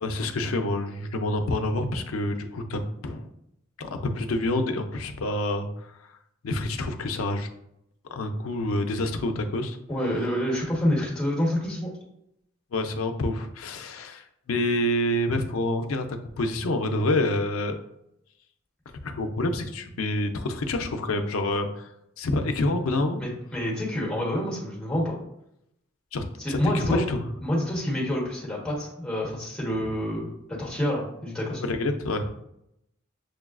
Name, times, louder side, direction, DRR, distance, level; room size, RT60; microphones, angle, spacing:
voice 1, 0.0-3.3 3.8-6.0 6.4-7.5 8.1-9.8 12.7-17.8 19.0-21.9 22.2-23.2 26.1-27.2 31.6-32.3, left 1 dB, 90° left, 6 dB, 0.5 m, -27 dB
voice 2, 9.9-11.9 23.2-25.2 26.4-27.0 27.4-31.6, equal, 5° left, -4 dB, 1.2 m, -27 dB
6.4 x 2.3 x 2.4 m, 0.79 s
head